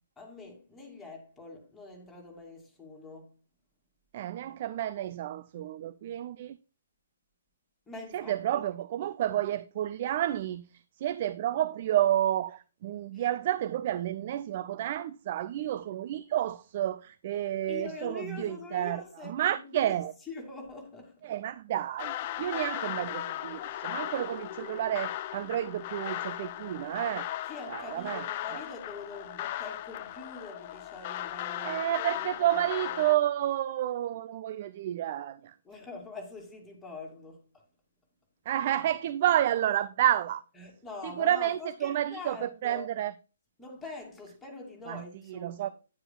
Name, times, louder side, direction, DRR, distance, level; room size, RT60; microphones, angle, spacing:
voice 1, 0.2-3.4 7.9-8.6 13.1-13.3 17.7-19.9 20.3-21.3 27.5-31.8 32.1-33.1 35.6-37.6 40.6-42.9 43.6-45.7, left 3 dB, 5° left, 2.7 m, -44 dB
voice 2, 4.1-6.6 8.1-20.1 21.2-27.3 27.7-28.3 28.5-28.6 31.6-35.6 38.5-40.4 41.0-43.1 44.9-45.0 45.3-45.7, right 12 dB, 35° right, 0.4 m, -30 dB
sound 1, 22.0-33.2, left 13 dB, 35° left, 0.4 m, -37 dB
10.0 x 9.7 x 2.3 m
figure-of-eight pair, 130°, 0 cm